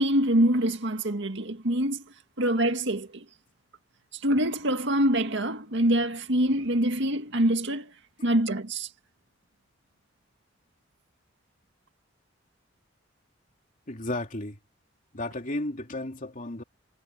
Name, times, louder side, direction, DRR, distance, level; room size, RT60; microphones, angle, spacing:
voice 1, 0.0-2.0 2.4-3.2 4.2-7.9 8.2-8.9, right 1 dB, 65° right, 2.0 m, -25 dB
voice 2, 13.9-14.5 15.1-16.6, left 1 dB, 40° left, 2.9 m, -33 dB
head